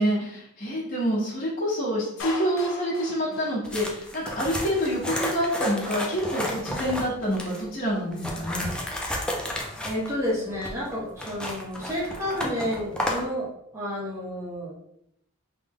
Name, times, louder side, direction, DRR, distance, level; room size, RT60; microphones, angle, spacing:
voice 1, 0.0-8.7, equal, 40° left, -7 dB, 1.1 m, -27 dB
Clapping, 2.2-4.2, left 3 dB, 70° left, 0.6 m, -39 dB
sound 1, 3.6-7.6 8.1-13.3, left 1 dB, 5° left, 0.4 m, -32 dB
voice 2, 9.8-14.7, left 1 dB, 15° right, -6 dB, 0.8 m, -30 dB
3.3 x 2.1 x 3.5 m, 0.76 s
head